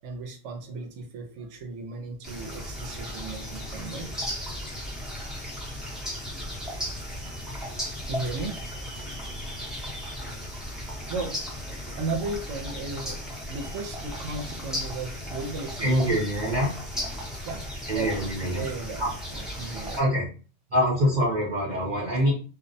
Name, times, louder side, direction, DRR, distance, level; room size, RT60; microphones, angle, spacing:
voice 1, 0.0-4.3 5.3-5.4 6.0-6.1 7.8-8.8 9.8-10.4 11.1-13.2 13.5-16.2 17.5-17.6 17.9-18.1 18.5-19.1 19.3-20.0 22.0-22.3, right 3 dB, 75° right, 5 dB, 0.9 m, -36 dB
sound 1, 2.2-20.0, equal, ahead, 0.6 m, -36 dB
voice 2, 15.8-16.7 17.9-18.7 19.0-19.1 20.0-20.2 20.7-22.3, equal, 45° right, -5 dB, 0.7 m, -24 dB
2.4 x 2.1 x 2.6 m, 0.37 s
omnidirectional pair, 1.3 m